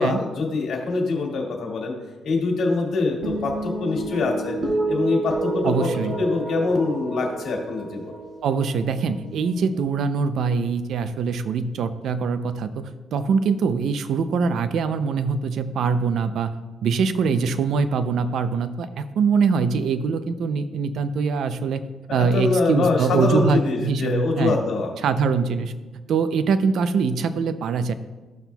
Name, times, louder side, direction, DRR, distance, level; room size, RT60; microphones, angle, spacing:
voice 1, 0.0-1.9 2.2-4.6 4.9-5.9 6.2-8.1 22.1-24.9, left 3 dB, 65° left, 0 dB, 2.0 m, -24 dB
sound 1, 3.2-9.8, right 2 dB, 45° right, 2.5 m, -30 dB
voice 2, 5.6-6.2 8.4-16.5 16.8-21.8 22.1-24.6 25.0-25.7 26.1-27.9, right 5 dB, 70° right, 11 dB, 0.5 m, -23 dB
14.0 x 5.9 x 2.3 m, 1.2 s
cardioid pair, 90°, 0 cm